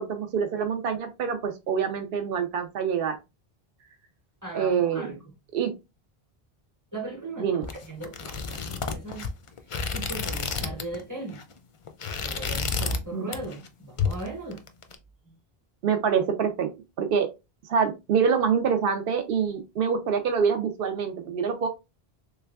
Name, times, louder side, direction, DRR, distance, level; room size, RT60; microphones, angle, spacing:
voice 1, 0.0-3.2 4.5-5.1 5.5-5.7 7.4-7.6 13.1-13.2 15.8-16.7 17.0-17.3 17.7-21.7, right 6 dB, 70° right, 0.7 m, -25 dB
voice 2, 4.4-5.2 6.9-9.3 9.9-11.4 12.2-14.6, right 2 dB, 20° right, 1.0 m, -38 dB
sound 1, 7.6-11.0 11.3-11.5 11.9-13.0 13.3-13.7 14.0-14.9, left 5 dB, 55° left, 0.3 m, -30 dB
3.3 x 3.1 x 2.3 m
omnidirectional pair, 1.0 m